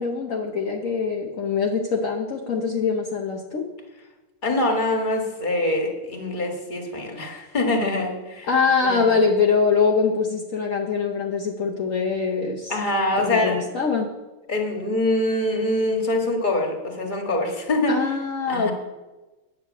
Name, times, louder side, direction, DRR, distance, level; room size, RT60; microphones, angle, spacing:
voice 1, 0.0-3.6 8.5-12.8 13.2-14.1 17.9-18.7, left 5 dB, 45° left, 0 dB, 1.2 m, -23 dB
voice 2, 4.4-8.5 8.8-9.2 12.7-13.6 14.5-18.0 18.5-18.7, left 1 dB, 25° left, 2 dB, 1.7 m, -24 dB
10.5 x 6.6 x 8.4 m, 1.1 s
omnidirectional pair, 2.3 m